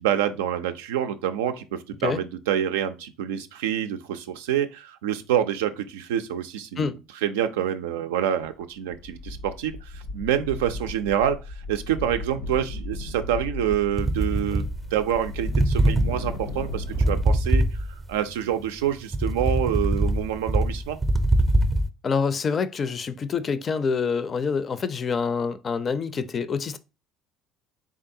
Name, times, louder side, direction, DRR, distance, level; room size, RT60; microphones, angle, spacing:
voice 1, 0.0-6.9 7.2-11.4 11.7-21.0, right 10 dB, 80° right, 0.4 m, -27 dB
sound 1, 8.4-8.6 8.9-17.4, left 2 dB, 85° left, 0.8 m, -35 dB
sound 2, 14.0-15.2 15.5-18.2 18.6-21.9, right 1 dB, 25° right, 0.5 m, -23 dB
voice 2, 22.0-26.8, left 5 dB, 40° left, 0.4 m, -26 dB
3.8 x 3.4 x 2.6 m
hypercardioid pair, 70°, 0 cm